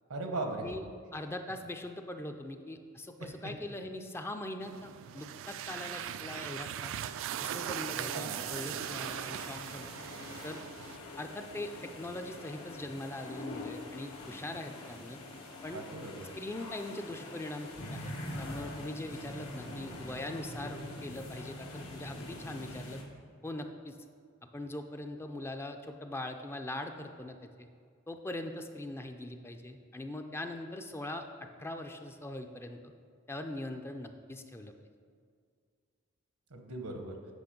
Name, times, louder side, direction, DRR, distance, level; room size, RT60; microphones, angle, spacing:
voice 1, 0.1-0.6 3.4-3.5 7.8-8.4 15.7-16.3 36.5-37.1, right 2 dB, 85° right, 4 dB, 1.1 m, -38 dB
voice 2, 1.1-6.9 7.4-9.9 10.4-10.6 11.2-15.2 15.6-15.8 16.3-18.1 18.4-23.0 23.4-24.0 24.4-27.7 28.1-32.9 33.3-34.7, left 1 dB, 10° left, 6 dB, 0.4 m, -41 dB
sound 1, 4.6-11.0, right 10 dB, 65° right, 0.3 m, -39 dB
sound 2, 8.3-23.0, left 1 dB, 85° left, 1.6 m, -44 dB
8.3 x 5.3 x 5.1 m, 2.1 s
head